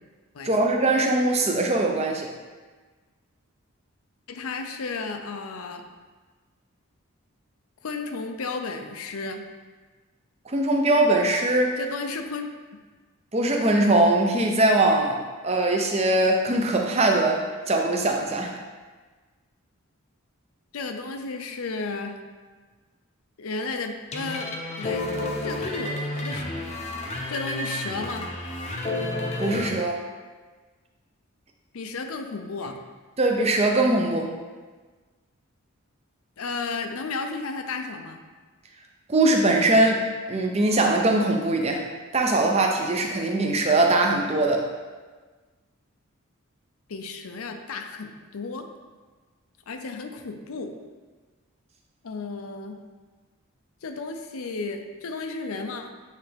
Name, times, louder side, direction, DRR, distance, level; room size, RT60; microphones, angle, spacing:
voice 1, 0.4-2.3 10.5-11.8 13.3-15.2 15.4-18.5 29.4-30.0 33.2-34.3 39.1-41.8 42.1-44.7, right 2 dB, 30° right, 2 dB, 0.6 m, -21 dB
voice 2, 4.3-5.8 7.8-9.5 11.8-12.5 20.7-22.2 23.4-24.5 24.8-25.0 25.4-26.7 27.3-28.3 31.7-32.8 36.4-38.2 46.9-48.7 49.7-50.8 52.0-52.8 53.8-55.9, left 4 dB, 80° left, 5 dB, 0.6 m, -33 dB
sound 1, 24.1-29.7, left 1 dB, 30° left, 0.6 m, -31 dB
8.3 x 3.4 x 3.4 m, 1.4 s
head